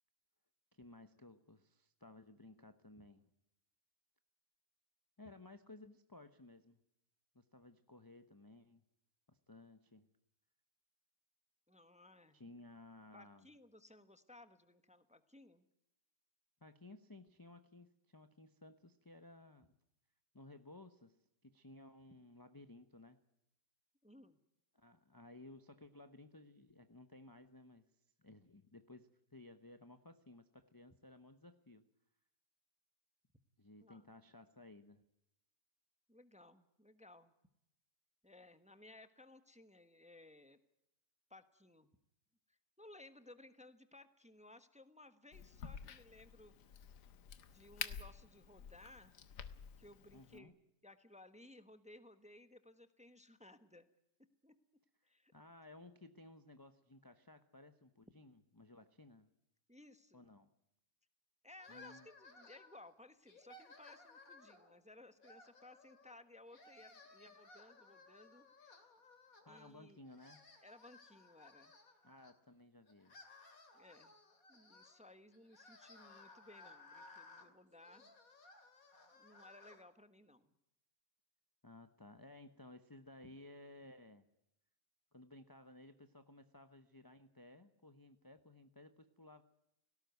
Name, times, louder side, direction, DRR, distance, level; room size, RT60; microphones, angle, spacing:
voice 1, 0.7-3.2 5.2-6.8 7.3-8.8 9.3-10.1 12.3-13.5 16.6-19.7 20.3-21.2 21.4-23.2 24.7-27.9 28.2-31.8 33.6-35.0 50.1-50.5 55.3-59.3 60.1-60.5 61.7-62.1 69.4-70.4 72.0-73.3 81.6-84.2 85.1-89.4, left 2 dB, 15° left, 9 dB, 0.7 m, -58 dB
voice 2, 11.7-12.4 13.1-15.7 24.0-24.4 33.8-34.0 36.1-37.3 38.2-40.6 41.3-41.9 42.8-46.8 47.5-49.1 49.8-50.6 50.8-53.9 54.4-54.5 55.0-55.3 59.7-60.3 61.4-68.8 69.5-70.0 70.6-71.7 73.7-74.1 74.5-78.0 79.1-80.5, left 2 dB, 5° right, 10 dB, 1.0 m, -60 dB
Crack, 45.3-50.4, left 8 dB, 75° left, 1.7 m, -50 dB
sound 1, 61.6-62.9 63.3-64.7 65.2-66.2 66.5-69.7 70.0-72.3 72.9-79.8, left 3 dB, 55° left, 3.0 m, -60 dB
18.0 x 17.5 x 9.4 m, 0.81 s
omnidirectional pair, 1.8 m